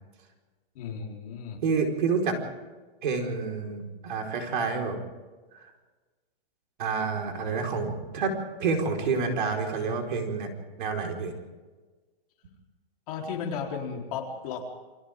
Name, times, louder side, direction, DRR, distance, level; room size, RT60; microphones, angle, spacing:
voice 1, 0.7-1.6 13.1-14.6, left 6 dB, 40° left, 0 dB, 4.1 m, -34 dB
voice 2, 1.6-2.4 3.0-5.0 5.5-5.6 6.8-10.5 10.8-11.3, right 4 dB, 55° right, 3 dB, 5.0 m, -28 dB
29.5 x 24.5 x 3.8 m, 1.3 s
hypercardioid pair, 165°, 30 cm